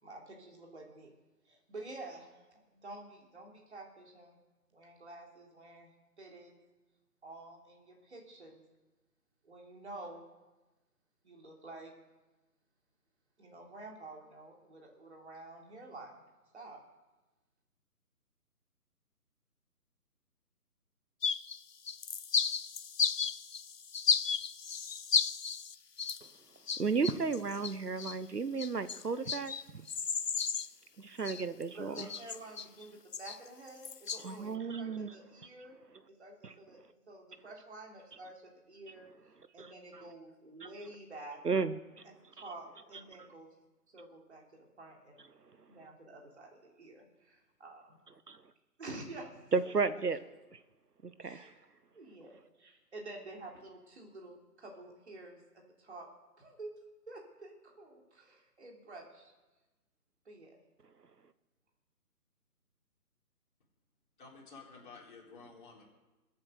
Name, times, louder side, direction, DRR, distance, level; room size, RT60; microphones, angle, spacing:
voice 1, 0.0-1.1 1.4-2.5 2.8-4.4 4.7-5.9 6.2-6.6 7.2-8.6 9.4-10.2 11.2-11.9 13.4-16.2 16.5-16.8 31.7-35.8 36.2-36.8 37.1-39.1 39.5-41.4 42.3-43.5 43.9-45.2 45.7-48.0 48.8-49.3 51.2-51.6 51.9-56.1 56.4-56.7 57.1-59.3 60.2-60.6, right 2 dB, 45° right, 0 dB, 3.4 m, -49 dB
sound 1, 21.2-21.6 21.9-26.3 26.7-28.2 28.6-30.7 31.2-31.6 32.0-32.8 33.1-34.3, left 6 dB, 80° left, 0.8 m, -33 dB
voice 2, 26.8-29.8 31.0-32.1 34.2-35.1 36.4-36.5 39.6-39.7 40.6-40.7 41.4-41.7 49.5-50.2 51.2-51.4, right 4 dB, 80° right, 13 dB, 1.0 m, -33 dB
voice 3, 31.7-32.0 64.2-65.8, left 4 dB, 30° left, -2 dB, 4.2 m, -53 dB
21.0 x 8.7 x 6.5 m, 1.1 s
figure-of-eight pair, 150°, 47 cm